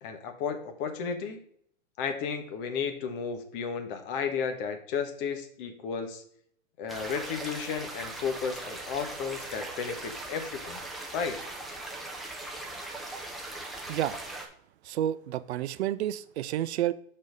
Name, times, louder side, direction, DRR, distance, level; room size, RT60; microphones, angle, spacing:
voice 1, 0.0-1.4 2.0-6.2 6.8-10.8 11.1-11.4, left 6 dB, 40° left, 6 dB, 1.3 m, -33 dB
sound 1, 6.9-14.5, right 2 dB, ahead, 0.4 m, -39 dB
voice 2, 14.8-16.9, right 12 dB, 55° right, 15 dB, 0.6 m, -30 dB
6.3 x 4.4 x 5.1 m, 0.64 s
hypercardioid pair, 130°, 41 cm